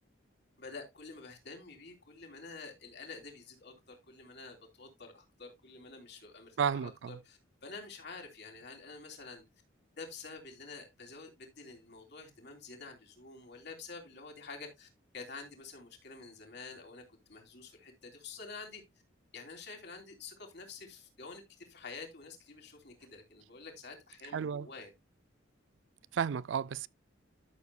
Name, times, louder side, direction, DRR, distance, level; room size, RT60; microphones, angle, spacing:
voice 1, 0.6-9.4 10.0-14.9 15.1-17.0 17.3-18.8 19.3-24.9, left 4 dB, 60° left, 3.2 m, -48 dB
voice 2, 6.6-7.2 24.3-24.7 26.1-26.9, right 7 dB, 65° right, 0.4 m, -32 dB
13.0 x 7.0 x 2.3 m
head